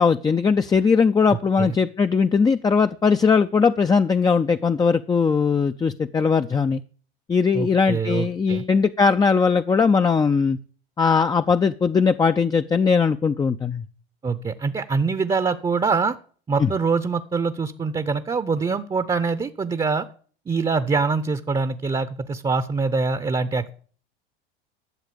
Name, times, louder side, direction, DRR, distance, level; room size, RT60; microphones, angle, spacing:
voice 1, 0.0-6.8 7.3-10.6 11.0-13.8 16.6-16.7, left 5 dB, 15° left, 8 dB, 0.4 m, -19 dB
voice 2, 7.5-8.6 14.2-16.2 16.5-20.1 20.5-23.8, right 4 dB, 15° right, 12 dB, 0.7 m, -24 dB
12.0 x 7.3 x 6.8 m, 0.43 s
hypercardioid pair, 95°, 30 cm